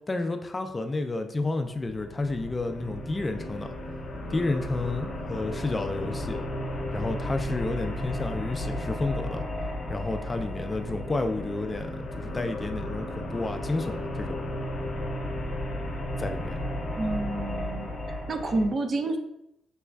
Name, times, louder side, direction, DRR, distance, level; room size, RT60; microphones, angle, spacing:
voice 1, 0.1-3.7 4.3-6.4 6.9-9.4 9.9-11.9 12.2-14.4 16.2-16.6, left 2 dB, 25° left, 6 dB, 0.3 m, -31 dB
sound 1, 1.7-18.7, left 1 dB, 50° left, 0.7 m, -34 dB
voice 2, 17.0-19.2, right 2 dB, 50° right, 5 dB, 0.5 m, -29 dB
6.0 x 2.3 x 2.2 m, 0.84 s
cardioid pair, 90°, 0 cm